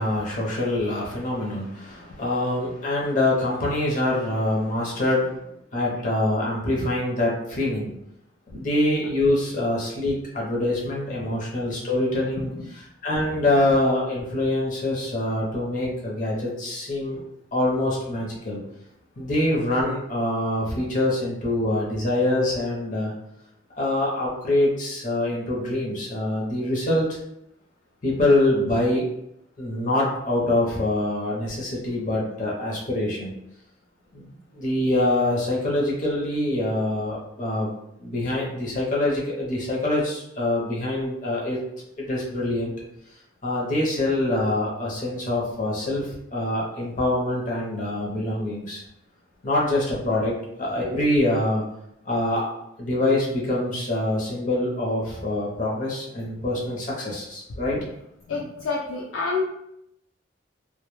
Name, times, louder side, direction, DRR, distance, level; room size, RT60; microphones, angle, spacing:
voice 1, 0.0-7.9 8.5-12.5 13.0-17.2 17.5-18.6 19.2-23.1 23.8-27.1 28.0-29.1 29.6-33.3 34.1-37.7 38.0-41.6 42.0-42.7 43.4-48.8 49.4-51.6 52.0-52.5 52.8-57.8, left 1 dB, 40° left, -4 dB, 0.6 m, -25 dB
voice 2, 58.3-59.4, left 4 dB, 85° left, -3 dB, 0.4 m, -29 dB
2.1 x 2.1 x 3.0 m, 0.80 s
head